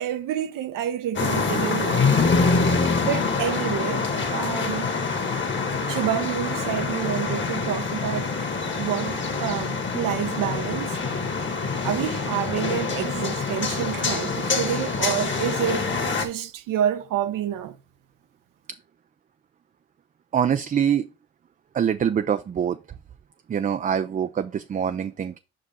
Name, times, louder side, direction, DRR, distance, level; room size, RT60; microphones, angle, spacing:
voice 1, 0.0-2.1 3.0-4.9 5.9-8.3 8.8-11.0 11.8-15.9 16.2-17.8, right 10 dB, 65° right, 0.7 m, -28 dB
sound 1, 1.2-16.3, left 4 dB, 35° left, 1.5 m, -25 dB
voice 2, 20.3-21.1 21.7-22.8 23.5-25.4, right 8 dB, 25° right, 0.4 m, -24 dB
5.3 x 5.2 x 4.2 m
supercardioid pair, 65°, 35 cm